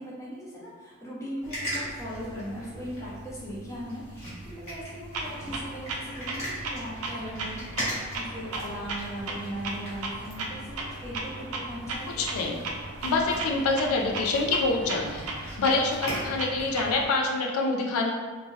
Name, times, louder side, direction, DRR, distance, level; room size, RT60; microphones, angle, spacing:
voice 1, 0.0-12.2 15.7-16.2, equal, 15° left, -7 dB, 0.6 m, -39 dB
sound 1, 1.4-17.1, equal, 30° left, 1.2 m, -40 dB
Clock, 5.1-17.1, right 3 dB, 85° right, 0.4 m, -37 dB
voice 2, 12.1-12.6 13.0-15.3 15.6-18.1, left 3 dB, 85° left, 1 dB, 0.4 m, -26 dB
2.6 x 2.2 x 3.0 m, 1.4 s
head